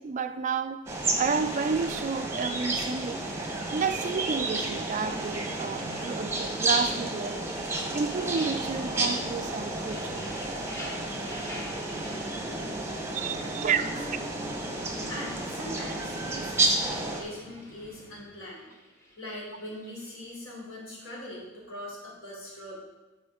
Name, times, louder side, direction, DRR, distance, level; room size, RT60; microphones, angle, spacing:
voice 1, 0.0-3.2 3.7-7.5 7.9-10.2 13.1-14.1, right 5 dB, 35° right, 0.3 m, -31 dB
sound 1, 0.9-17.2, right 2 dB, 10° right, 0.9 m, -31 dB
sound 2, 1.0-20.4, left 1 dB, 15° left, 1.0 m, -48 dB
sound 3, 8.3-18.3, equal, 45° left, 1.5 m, -51 dB
voice 2, 12.8-14.5 15.1-18.7 19.2-22.8, left 1 dB, 70° left, 3.1 m, -42 dB
12.5 x 5.0 x 3.6 m
head